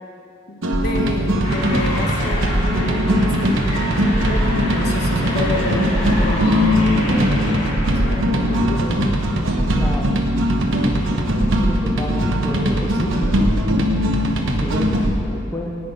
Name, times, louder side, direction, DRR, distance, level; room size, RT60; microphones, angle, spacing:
voice 1, 0.5-3.1 4.3-7.6 8.0-9.1 13.1-13.7, left 1 dB, 55° left, 2 dB, 1.2 m, -29 dB
sound 1, 0.6-15.2, equal, 70° right, 1.1 m, -19 dB
sound 2, 1.4-8.6, equal, 35° left, 3.0 m, -29 dB
voice 2, 9.7-10.2 11.6-13.2 14.6-15.8, left 1 dB, 10° left, -1 dB, 0.8 m, -30 dB
17.5 x 6.1 x 5.4 m, 2.5 s
head